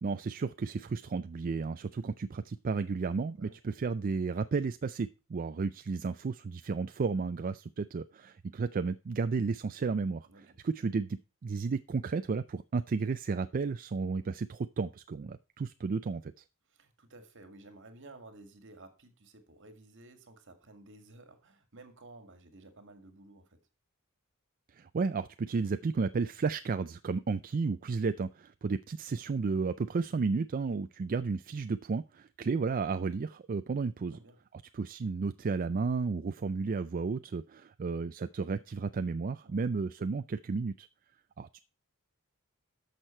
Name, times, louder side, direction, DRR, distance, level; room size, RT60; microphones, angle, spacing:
voice 1, 0.0-10.3 10.6-16.3 24.7-34.2 34.7-40.9 41.4-41.6, right 4 dB, 40° right, 12 dB, 0.4 m, -33 dB
voice 2, 10.3-10.6 16.7-23.6 34.1-34.4 39.4-39.6, right 2 dB, 60° right, 7 dB, 2.0 m, -54 dB
12.0 x 6.5 x 4.4 m, 0.33 s
head